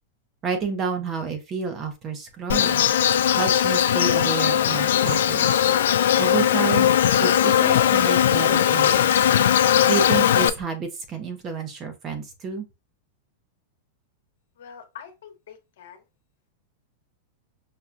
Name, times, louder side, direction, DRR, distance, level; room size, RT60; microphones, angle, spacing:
voice 1, 0.4-2.8 3.3-5.6 6.2-6.9 7.2-9.3 9.9-12.6, right 5 dB, 20° right, 0.5 m, -30 dB
Insect, 2.5-10.5, left 10 dB, 85° left, 0.3 m, -19 dB
voice 2, 14.6-16.0, left 8 dB, 65° left, 1.0 m, -44 dB
5.6 x 2.2 x 2.5 m
supercardioid pair, 180°, 0 cm